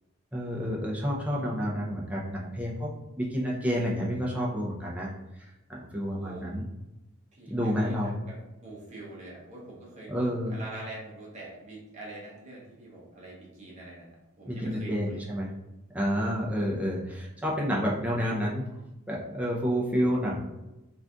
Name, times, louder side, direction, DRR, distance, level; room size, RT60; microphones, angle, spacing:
voice 1, 0.3-2.9 3.2-5.1 5.4-6.6 7.5-8.1 10.1-10.6 14.5-15.5 15.9-18.7 19.1-20.4, equal, 5° right, -4 dB, 0.5 m, -29 dB
voice 2, 6.1-6.5 7.3-8.4 8.6-15.2, right 2 dB, 30° right, -5 dB, 0.9 m, -44 dB
2.6 x 2.3 x 3.5 m, 0.98 s
head